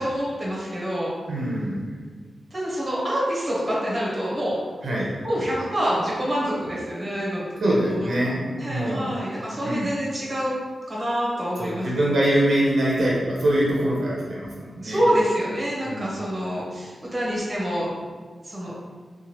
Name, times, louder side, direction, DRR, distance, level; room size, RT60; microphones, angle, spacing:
voice 1, 0.0-1.1 2.5-4.6 5.2-10.5 10.9-12.2 14.8-17.9 18.4-18.7, equal, 25° right, -6 dB, 0.8 m, -27 dB
voice 2, 1.3-1.9 4.8-5.1 7.6-9.1 9.6-9.9 11.6-15.0 15.8-16.1, right 1 dB, 65° right, -5 dB, 0.6 m, -24 dB
2.9 x 2.2 x 2.9 m, 1.5 s
wide cardioid pair, 155°, 0 cm